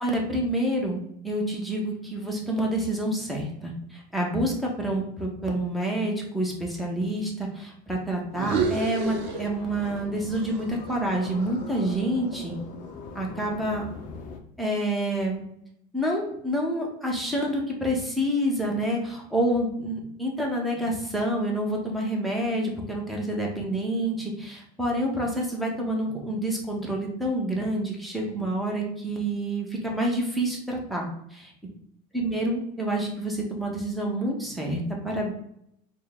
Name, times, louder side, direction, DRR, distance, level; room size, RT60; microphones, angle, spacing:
voice 1, 0.0-12.6 13.1-13.8 14.6-15.4 15.9-31.5 32.1-35.3, right 1 dB, ahead, -2 dB, 0.8 m, -28 dB
sound 1, 8.3-10.1 10.3-12.6, right 4 dB, 60° right, 0.6 m, -31 dB
sound 2, 9.0-14.4, left 5 dB, 40° left, 0.6 m, -41 dB
4.4 x 2.1 x 3.5 m, 0.75 s
cardioid pair, 140°, 21 cm